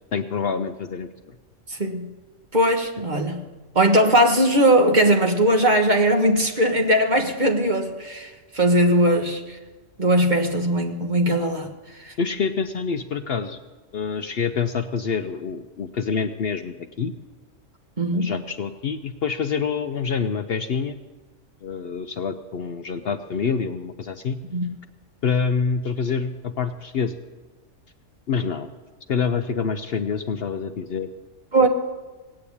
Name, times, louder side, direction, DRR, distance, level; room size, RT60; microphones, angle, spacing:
voice 1, 0.1-1.1 12.2-13.6 13.9-17.1 18.1-21.0 21.6-24.4 25.2-27.2 28.3-28.7 29.1-31.1 31.6-31.7, left 5 dB, 55° left, 8 dB, 0.8 m, -26 dB
voice 2, 1.7-2.1 2.5-3.4 3.7-9.6 10.0-11.7 12.0-12.1 18.0-18.3 24.5-24.7 31.5-31.7, right 1 dB, 35° right, 4 dB, 1.4 m, -19 dB
18.0 x 8.8 x 8.5 m, 1.3 s
omnidirectional pair, 1.3 m